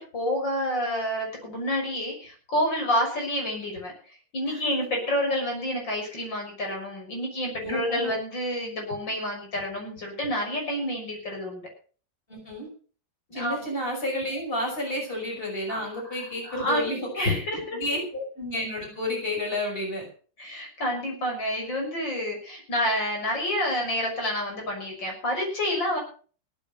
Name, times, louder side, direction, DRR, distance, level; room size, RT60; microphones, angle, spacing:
voice 1, 0.1-3.9 4.3-11.7 13.3-13.6 15.7-16.2 16.4-17.8 20.4-26.0, equal, 75° left, 1 dB, 7.1 m, -29 dB
voice 2, 7.6-8.2 12.3-12.7 13.3-17.4 17.7-20.1, left 1 dB, 30° left, 1 dB, 6.5 m, -31 dB
17.5 x 9.0 x 6.7 m, 0.42 s
omnidirectional pair, 2.0 m